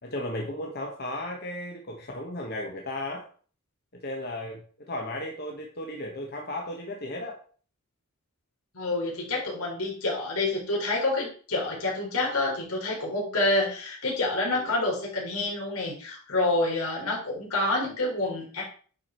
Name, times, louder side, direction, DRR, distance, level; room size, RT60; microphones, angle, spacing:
voice 1, 0.0-3.3 3.9-7.4 14.5-14.7, left 1 dB, 45° left, 0 dB, 1.4 m, -35 dB
voice 2, 8.7-18.6, left 2 dB, 85° left, -2 dB, 4.0 m, -28 dB
9.9 x 5.0 x 4.5 m, 0.43 s
head